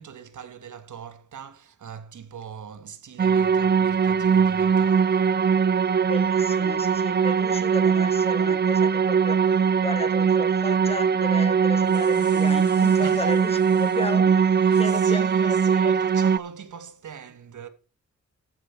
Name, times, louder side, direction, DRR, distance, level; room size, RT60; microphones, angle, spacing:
voice 1, 0.0-5.4 13.0-13.3 14.6-17.7, right 7 dB, 90° right, 1.3 m, -41 dB
sound 1, 3.2-16.4, right 6 dB, 35° right, 0.4 m, -21 dB
voice 2, 6.0-16.0, left 2 dB, 20° left, 1.4 m, -34 dB
sound 2, 11.6-14.2 14.7-15.4, left 4 dB, 50° left, 2.4 m, -50 dB
13.5 x 7.0 x 4.4 m
wide cardioid pair, 95°, 29 cm